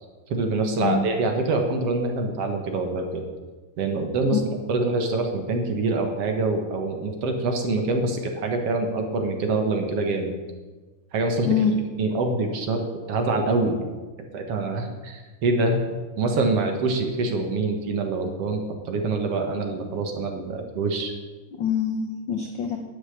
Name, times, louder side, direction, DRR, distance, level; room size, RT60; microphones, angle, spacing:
voice 1, 0.3-3.2 3.8-4.4 4.7-10.3 11.1-12.8 13.1-13.8 14.3-21.1, right 3 dB, 60° right, 4 dB, 2.2 m, -25 dB
voice 2, 11.4-11.8 21.5-22.8, left 6 dB, 75° left, 4 dB, 1.1 m, -24 dB
11.5 x 7.2 x 8.7 m, 1.3 s
omnidirectional pair, 3.5 m